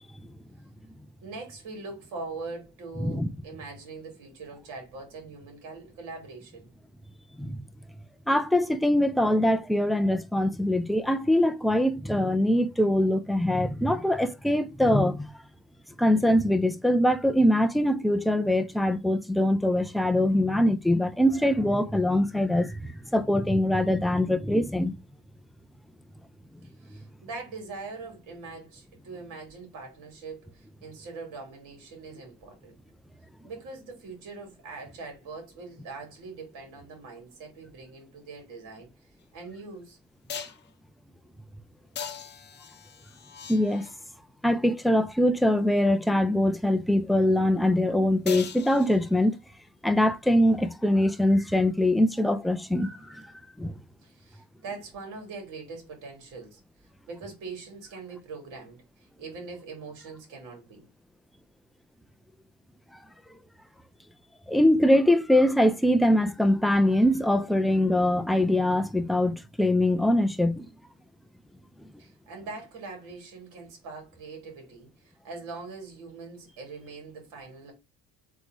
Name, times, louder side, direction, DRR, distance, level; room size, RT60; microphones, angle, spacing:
voice 1, 1.2-6.7 26.8-32.8 33.4-38.9 39.3-40.0 54.0-56.6 57.1-60.9 72.0-77.7, right 4 dB, 65° right, 2.5 m, -42 dB
voice 2, 3.0-3.3 7.4-7.6 8.3-15.3 16.0-24.9 43.5-43.9 44.4-49.4 49.8-53.3 53.6-53.8 64.5-70.7, left 1 dB, ahead, 0.3 m, -23 dB
sound 1, 39.2-39.3 40.3-40.7 42.0-44.1 48.3-49.4 53.2-53.3, left 7 dB, 30° left, 0.7 m, -40 dB
3.7 x 3.0 x 3.7 m
supercardioid pair, 95°, 34 cm